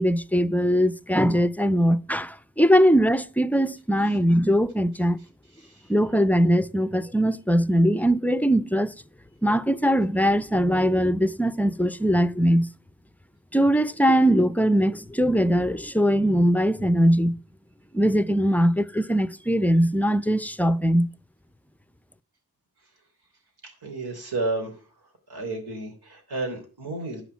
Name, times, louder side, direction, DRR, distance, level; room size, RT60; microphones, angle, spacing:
voice 1, 0.0-5.2 5.9-8.9 9.4-12.7 13.5-17.4 17.9-21.1, equal, 5° left, 0.5 m, -21 dB
voice 2, 5.6-5.9 23.8-24.8 25.3-27.2, right 2 dB, 85° right, 3.4 m, -31 dB
9.6 x 5.9 x 7.1 m
cardioid pair, 65°, 37 cm